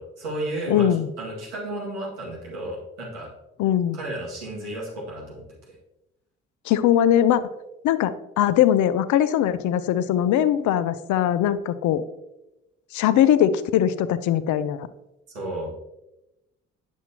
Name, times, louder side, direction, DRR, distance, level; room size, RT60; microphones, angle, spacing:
voice 1, 0.0-0.9 1.2-3.3 3.9-5.8 15.3-15.7, right 1 dB, 85° right, -5 dB, 2.1 m, -33 dB
voice 2, 0.7-1.1 3.6-4.0 6.7-7.4 7.8-12.0 12.9-14.9, left 10 dB, 60° left, 14 dB, 0.6 m, -21 dB
9.3 x 7.1 x 2.9 m, 0.96 s
hypercardioid pair, 45°, 34 cm